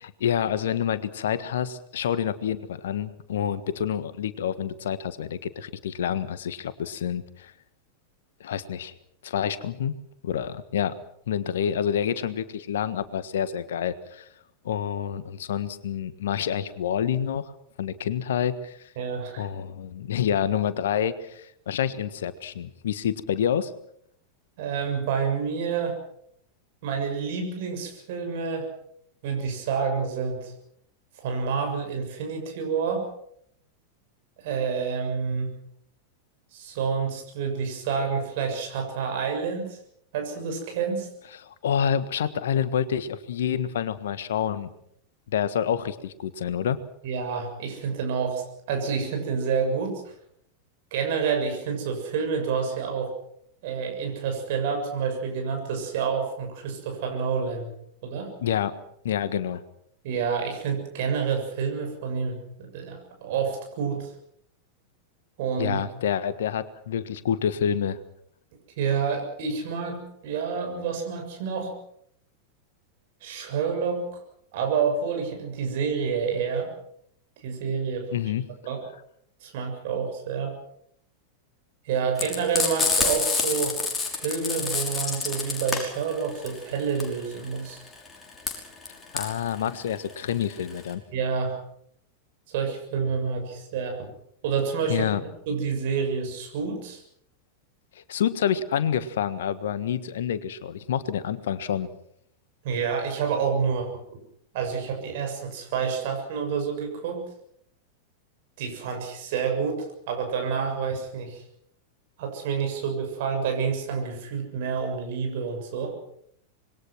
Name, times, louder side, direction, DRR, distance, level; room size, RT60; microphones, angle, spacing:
voice 1, 0.0-7.5 8.4-8.9 9.2-9.9 10.2-10.9 11.3-14.3 14.6-17.5 17.8-18.8 19.4-23.7 41.4-44.7 45.3-46.8 58.4-58.7 59.0-59.6 65.6-68.0 78.1-78.5 89.1-91.0 94.9-95.2 98.1-101.9, left 9 dB, 60° left, 14 dB, 1.5 m, -28 dB
voice 2, 19.0-19.5 24.6-26.0 26.8-28.7 29.2-30.5 31.2-33.1 34.4-35.6 36.5-39.8 40.1-41.1 47.0-50.1 50.9-53.1 53.6-57.7 58.0-58.3 60.0-64.1 65.4-65.8 68.8-71.8 73.2-74.1 74.5-76.7 77.4-78.1 78.7-78.8 79.4-80.6 81.9-83.8 84.1-87.8 91.1-91.6 92.5-94.1 94.4-95.0 95.5-97.0 102.6-103.9 104.5-107.2 108.6-111.4 112.2-115.9, right 6 dB, 50° right, 3 dB, 7.0 m, -28 dB
Frying (food), 82.2-90.9, left 4 dB, 15° left, 5.8 m, -27 dB
26.0 x 21.5 x 6.1 m, 0.69 s
figure-of-eight pair, 90°, 0 cm